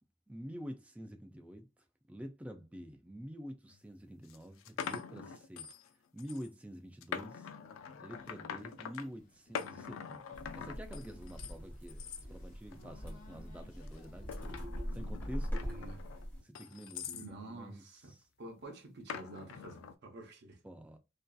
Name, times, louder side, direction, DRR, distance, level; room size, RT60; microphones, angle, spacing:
voice 1, 0.3-1.7 2.1-5.7 6.1-7.5 8.0-14.6 14.9-15.5 16.4-18.2 20.6-21.0, equal, 5° right, 0.3 m, -48 dB
sound 1, 3.7-3.8 4.3-5.9 6.2-6.5 7.0-9.1 9.5-11.5 11.9-12.2 12.7-13.1 13.8-17.3 19.1-19.9, left 7 dB, 75° left, 0.3 m, -44 dB
sound 2, 8.1-14.4, left 3 dB, 40° left, 0.8 m, -61 dB
sound 3, 10.3-16.4, equal, 10° left, 1.1 m, -42 dB
voice 2, 15.5-16.0 17.1-18.1 18.4-20.6, right 2 dB, 55° right, 0.7 m, -49 dB
2.6 x 2.3 x 2.2 m
head